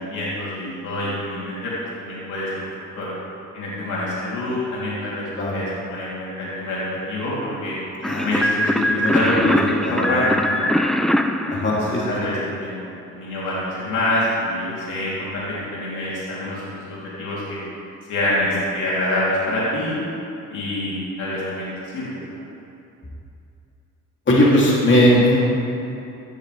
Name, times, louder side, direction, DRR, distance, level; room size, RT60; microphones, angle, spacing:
voice 1, 0.0-1.7 2.0-2.7 3.0-3.1 3.5-5.3 5.5-7.8 8.2-9.5 9.9-10.7 11.5-17.6 18.1-20.0 20.5-22.4, left 1 dB, 80° left, -8 dB, 3.2 m, -26 dB
sound 1, 8.0-12.5, equal, ahead, 0.6 m, -22 dB
voice 2, 8.8-9.6 9.8-10.2 11.5-12.1 24.3-25.4, left 1 dB, 40° left, -5 dB, 3.0 m, -19 dB
14.5 x 12.5 x 3.4 m, 2.7 s
cardioid pair, 90°, 30 cm